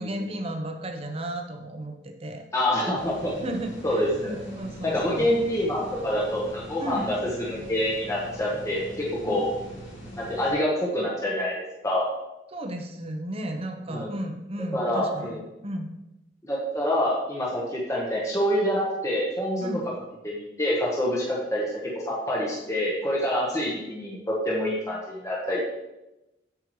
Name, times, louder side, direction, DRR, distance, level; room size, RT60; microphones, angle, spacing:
voice 1, 0.0-2.4 3.4-5.3 6.8-7.0 9.2-9.4 12.5-15.4 15.6-15.9 19.6-19.9 25.5-25.6, right 1 dB, 30° right, 4 dB, 0.9 m, -34 dB
voice 2, 2.5-3.3 3.8-4.4 4.8-9.4 10.2-12.1 13.9-14.1 14.7-15.4 16.5-19.7 20.2-21.7 22.0-25.6, left 1 dB, 15° left, -4 dB, 1.2 m, -26 dB
sound 1, 2.9-10.5, equal, 80° left, 2.7 m, -42 dB
8.1 x 7.5 x 3.2 m, 0.95 s
head